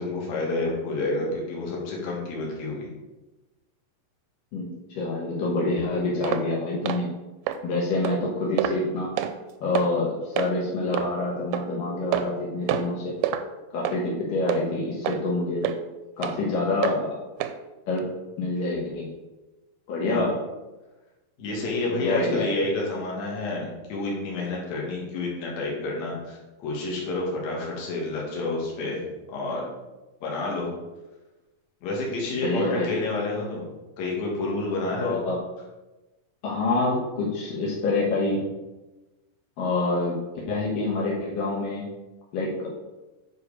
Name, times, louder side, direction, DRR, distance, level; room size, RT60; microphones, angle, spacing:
voice 1, 0.0-2.9 20.1-20.2 21.4-29.0 29.3-29.7 30.2-30.7 31.8-33.7 34.0-35.2, left 2 dB, 55° left, -3 dB, 2.8 m, -29 dB
voice 2, 4.5-7.1 7.6-9.1 9.6-13.1 13.7-15.7 16.2-17.1 17.9-18.1 18.4-19.1 19.9-20.4 21.9-22.5 32.4-32.9 35.0-35.4 36.4-38.4 39.6-40.2 40.5-41.8 42.3-42.7, left 2 dB, 70° left, -5 dB, 2.9 m, -26 dB
sound 1, 6.2-6.5 6.9-7.0 7.5-7.6 8.0-8.2 8.6-8.8 9.2-9.3 9.7-9.9 10.4-10.5 10.9-11.1 11.5-11.7 12.1-12.4 12.7-12.9 13.2-13.4 13.8-14.0 14.5-14.6 15.0-15.2 15.6-15.8 16.2-16.4 16.8-17.0 17.4-17.6 18.0-18.1, right 11 dB, 85° right, 2.2 m, -27 dB
9.2 x 4.9 x 4.9 m, 1.1 s
omnidirectional pair, 4.1 m